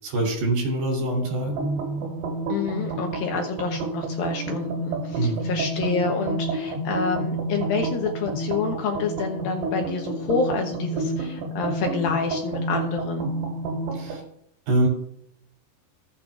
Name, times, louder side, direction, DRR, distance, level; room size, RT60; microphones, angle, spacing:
voice 1, 0.0-1.5 5.2-5.4 13.9-14.2 14.7-14.9, right 2 dB, 70° right, 0 dB, 5.3 m, -24 dB
sound 1, 1.5-14.2, right 2 dB, 85° right, 4.2 m, -29 dB
voice 2, 2.5-13.3, left 4 dB, 70° left, 2 dB, 2.3 m, -28 dB
17.0 x 7.7 x 2.4 m, 0.71 s
omnidirectional pair, 5.0 m